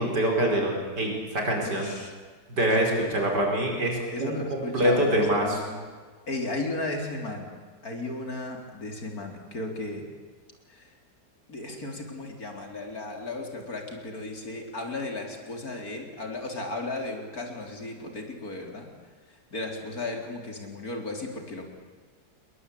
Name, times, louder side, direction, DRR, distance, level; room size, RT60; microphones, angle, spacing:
voice 1, 0.0-1.9 2.5-5.4, right 1 dB, 85° right, 1 dB, 5.5 m, -25 dB
voice 2, 1.6-2.2 4.1-5.7 6.3-7.5 7.8-10.1 10.7-10.9 11.5-18.9 19.3-21.6, left 2 dB, 60° left, 3 dB, 4.3 m, -35 dB
29.0 x 21.0 x 8.6 m, 1.5 s
omnidirectional pair, 1.8 m